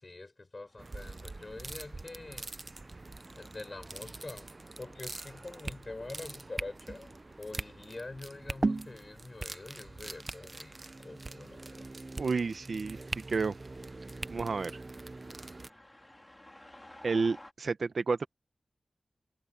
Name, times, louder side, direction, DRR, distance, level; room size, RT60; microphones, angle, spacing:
voice 1, 0.0-2.5 3.3-4.5 4.8-11.9, left 2 dB, 35° left, 6.3 m, -45 dB
sound 1, 0.6-17.5, left 1 dB, 15° left, 3.8 m, -60 dB
sound 2, 0.8-15.7, right 2 dB, 35° right, 0.6 m, -41 dB
voice 2, 12.2-13.0 13.3-13.5 14.3-14.7 17.0-18.3, right 4 dB, 65° right, 0.9 m, -30 dB
wide cardioid pair, 110°, 0 cm